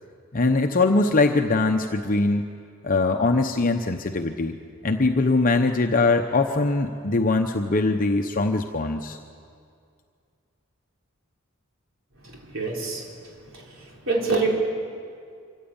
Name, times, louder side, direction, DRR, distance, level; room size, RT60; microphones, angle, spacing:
voice 1, 0.3-2.4 2.8-4.6 4.8-9.2, left 3 dB, 40° left, 5 dB, 0.8 m, -22 dB
voice 2, 12.2-14.5, right 3 dB, 65° right, -2 dB, 4.4 m, -28 dB
25.0 x 15.0 x 8.8 m, 2.3 s
head